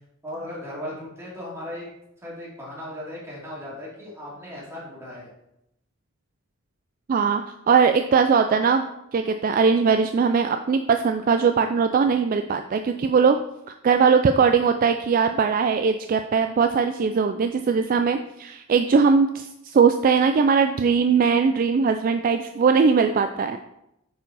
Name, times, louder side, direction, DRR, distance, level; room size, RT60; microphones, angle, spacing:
voice 1, 0.2-1.9 2.2-5.3, left 1 dB, 15° right, -6 dB, 2.6 m, -37 dB
voice 2, 7.1-8.8 9.1-13.4 13.8-23.6, right 5 dB, 45° right, 7 dB, 0.3 m, -20 dB
9.3 x 4.6 x 4.1 m, 0.84 s
head